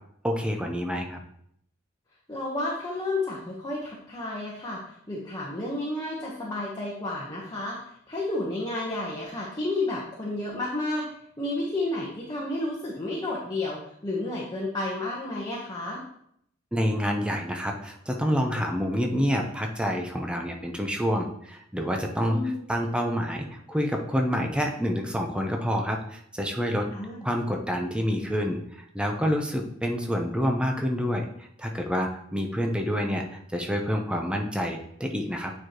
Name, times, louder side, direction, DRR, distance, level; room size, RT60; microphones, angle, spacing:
voice 1, 0.2-1.2 16.7-22.4 22.7-26.9 27.2-31.3 31.6-35.5, equal, 5° right, 2 dB, 0.7 m, -28 dB
voice 2, 2.3-11.0 11.4-16.0 22.3-22.6 26.9-27.2, left 2 dB, 20° left, -4 dB, 1.1 m, -31 dB
8.9 x 4.7 x 3.0 m, 0.71 s
head